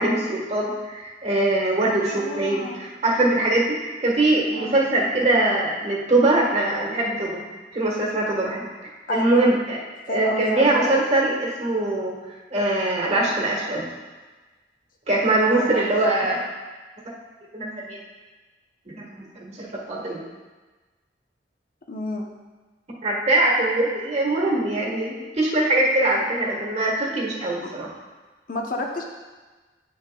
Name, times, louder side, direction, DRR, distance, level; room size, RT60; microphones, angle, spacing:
voice 1, 0.0-7.4 7.7-8.7 9.1-9.8 10.1-12.1 12.5-13.9 15.1-16.4 17.5-18.0 18.8-20.2 23.0-27.9, right 2 dB, 40° right, -3 dB, 1.3 m, -22 dB
voice 2, 2.1-2.8 4.6-4.9 9.1-9.3 10.1-11.0 15.5-16.1 21.9-22.3 28.5-29.0, left 2 dB, 50° left, 1 dB, 0.8 m, -30 dB
9.1 x 6.5 x 2.3 m, 1.3 s
head